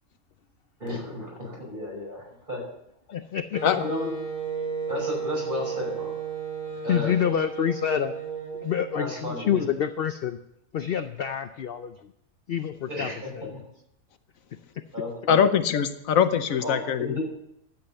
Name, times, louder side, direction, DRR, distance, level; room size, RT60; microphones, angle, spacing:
voice 1, 0.8-2.6 3.8-4.1 4.9-6.2 6.8-7.2 9.0-9.7 12.9-13.6 14.9-15.5 16.6-17.3, left 1 dB, 35° right, -2 dB, 5.5 m, -33 dB
voice 2, 3.1-3.6 6.9-8.1 8.6-10.4 10.7-11.9 12.5-13.1 13.3-13.5, left 9 dB, 55° left, 9 dB, 0.7 m, -27 dB
Wind instrument woodwind instrument, 3.5-9.2, right 5 dB, 80° right, 3.4 m, -33 dB
voice 3, 15.3-17.2, left 8 dB, 80° left, 10 dB, 1.2 m, -22 dB
12.0 x 7.9 x 6.9 m, 0.78 s
omnidirectional pair, 1.4 m